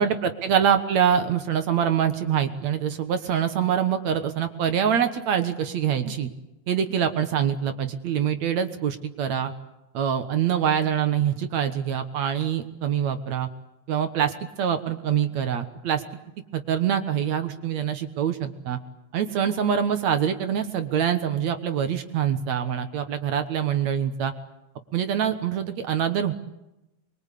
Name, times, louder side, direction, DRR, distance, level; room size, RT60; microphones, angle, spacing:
voice 1, 0.0-6.3 6.7-9.5 9.9-13.5 13.9-16.0 16.5-18.8 19.1-24.3 24.9-26.3, right 8 dB, 65° right, 8 dB, 1.9 m, -25 dB
24.5 x 23.0 x 8.4 m, 0.92 s
omnidirectional pair, 4.7 m